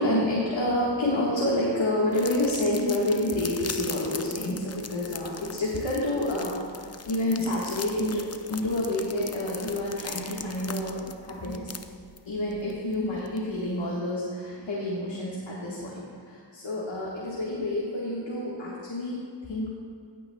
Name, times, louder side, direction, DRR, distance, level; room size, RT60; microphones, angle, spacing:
voice 1, 0.0-11.7 12.2-19.7, left 1 dB, 75° left, -6 dB, 1.6 m, -28 dB
sound 1, 2.1-13.8, left 5 dB, 35° left, 0.5 m, -41 dB
16.5 x 9.0 x 2.3 m, 2.1 s
wide cardioid pair, 60°, 45 cm